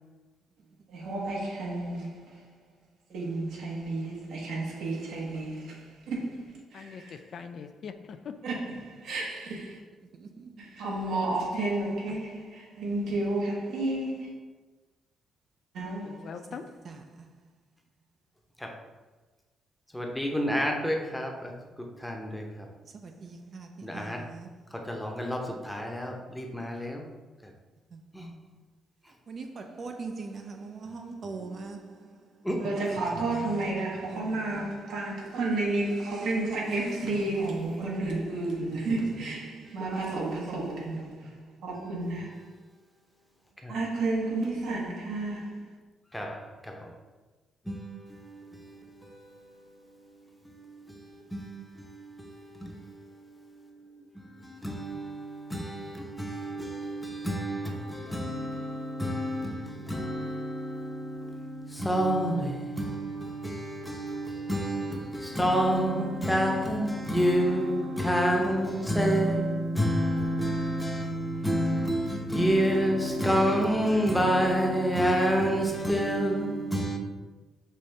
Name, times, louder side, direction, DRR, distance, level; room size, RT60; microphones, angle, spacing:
voice 1, 0.9-2.3 3.1-7.2 8.4-9.8 10.6-14.3 15.7-16.3 32.6-42.5 43.7-45.7, right 2 dB, 80° right, 1.0 m, -32 dB
voice 2, 6.7-8.4 16.0-16.8, left 6 dB, 60° left, 0.3 m, -42 dB
voice 3, 10.1-10.8 12.1-12.2 16.5-17.3 22.8-24.9 27.9-28.3 29.1-34.8 38.8-39.8, right 4 dB, 50° right, 0.4 m, -43 dB
voice 4, 19.9-21.5 22.0-22.7 23.8-24.2 24.7-27.0 28.1-28.3 32.4-32.6 42.2-42.3 43.6-43.7 46.1-46.9 47.7-77.0, equal, 5° left, 0.7 m, -29 dB
5.4 x 2.6 x 3.3 m
cardioid pair, 90°, 0 cm